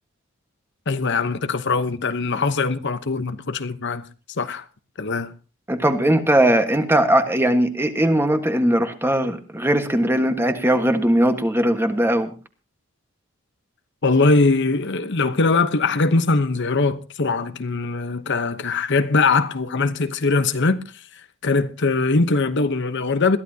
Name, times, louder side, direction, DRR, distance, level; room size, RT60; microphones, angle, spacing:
voice 1, 0.9-4.1 4.4-4.6 5.0-5.3 14.0-21.0 21.4-23.4, left 3 dB, 55° left, 1.0 m, -21 dB
voice 2, 5.7-12.3, right 1 dB, 10° right, 1.5 m, -19 dB
21.5 x 14.0 x 2.8 m
head